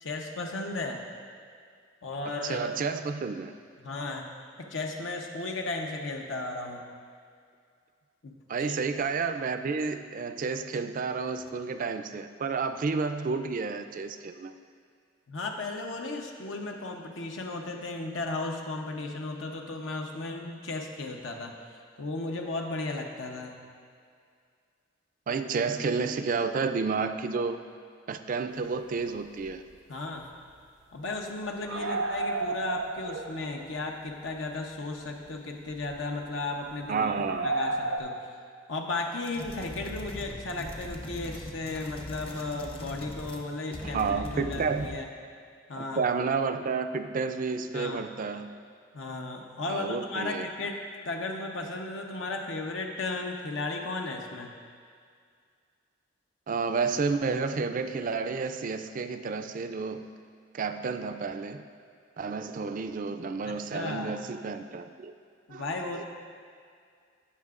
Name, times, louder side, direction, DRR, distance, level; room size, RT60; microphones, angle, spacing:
voice 1, 0.0-1.0 2.0-2.7 3.8-4.3 4.6-6.9 8.2-8.8 15.3-21.5 22.0-23.6 29.9-30.3 30.9-37.1 37.4-38.2 38.7-45.1 45.7-46.0 47.7-48.1 48.9-54.5 63.4-64.2 65.5-66.0, left 2 dB, 80° left, 2 dB, 0.8 m, -35 dB
voice 2, 2.4-3.5 8.5-14.5 25.3-27.6 28.1-29.6 31.8-31.9 36.9-37.5 43.8-45.0 45.8-48.5 49.7-50.5 56.5-60.1 60.5-61.6 62.2-65.1 65.5-65.6, right 4 dB, 45° right, 9 dB, 0.4 m, -31 dB
sound 1, 28.9-29.0 29.5-29.6 29.8-29.9 31.7-33.7 34.3-34.4 35.7-36.0 37.2-38.0, right 2 dB, 80° right, 0.7 m, -32 dB
sound 2, 39.2-43.5 43.7-45.0, left 1 dB, 30° left, 0.8 m, -40 dB
17.0 x 5.9 x 2.4 m, 2.2 s
head